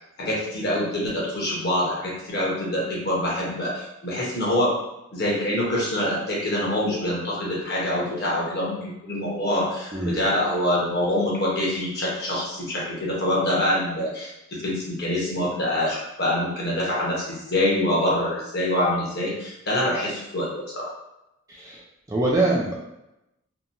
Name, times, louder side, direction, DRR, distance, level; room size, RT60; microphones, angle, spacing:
voice 1, 0.2-4.8 5.1-14.3 14.6-20.9, left 1 dB, 50° left, -5 dB, 0.9 m, -25 dB
voice 2, 21.5-21.8 22.1-22.7, right 2 dB, 15° right, -4 dB, 0.3 m, -23 dB
2.8 x 2.2 x 2.6 m, 0.89 s
head